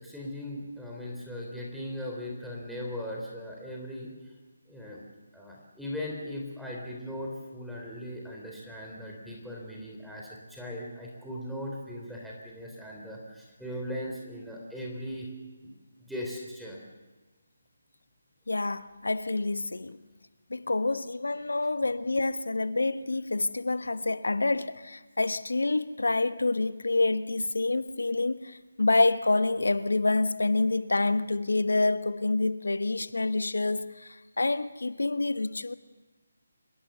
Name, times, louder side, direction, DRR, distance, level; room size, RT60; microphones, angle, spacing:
voice 1, 0.0-4.3 4.7-5.0 5.3-15.3 15.6-15.7 16.0-16.8, left 1 dB, ahead, 3.7 m, -39 dB
voice 2, 18.5-20.0 20.5-35.7, left 2 dB, 75° left, 1.3 m, -27 dB
25.5 x 21.5 x 6.9 m
figure-of-eight pair, 150°, 0 cm